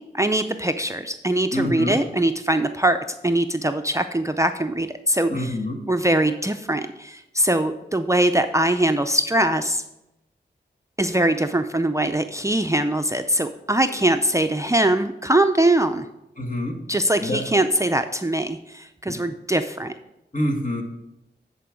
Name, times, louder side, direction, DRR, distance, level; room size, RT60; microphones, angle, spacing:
voice 1, 0.1-3.0 3.2-5.6 5.9-9.8 11.0-16.1 16.9-19.9, right 1 dB, 15° right, 7 dB, 0.5 m, -22 dB
voice 2, 1.5-2.0 5.3-5.8 16.4-16.8 17.2-17.4 19.1-19.2 20.3-20.8, left 1 dB, 45° left, 1 dB, 1.8 m, -25 dB
10.0 x 4.6 x 5.1 m, 0.89 s
cardioid pair, 45°, 19 cm